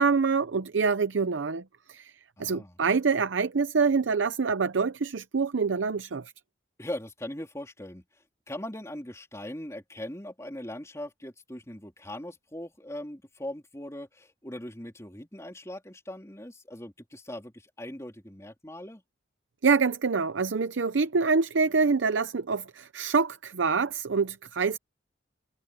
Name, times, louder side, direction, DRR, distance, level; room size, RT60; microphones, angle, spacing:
voice 1, 0.0-1.6 1.9-2.1 2.4-6.3 19.6-24.8, right 5 dB, 90° right, 0.7 m, -26 dB
voice 2, 2.4-2.8 6.8-8.0 8.5-19.0, left 1 dB, 15° left, 3.3 m, -40 dB
head